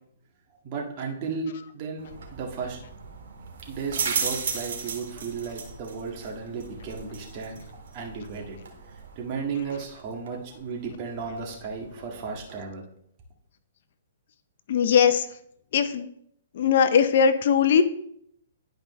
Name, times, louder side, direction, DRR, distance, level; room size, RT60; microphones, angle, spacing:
voice 1, 0.6-2.8 3.7-7.6 7.9-8.6 9.2-12.8, right 5 dB, 40° right, 0 dB, 1.8 m, -34 dB
sound 1, 2.0-12.6, right 5 dB, 65° right, 2.0 m, -36 dB
voice 2, 14.7-15.3 15.7-16.1 16.5-17.8, left 7 dB, 60° left, 11 dB, 0.7 m, -20 dB
11.0 x 4.9 x 3.2 m, 0.72 s
hypercardioid pair, 140°, 0 cm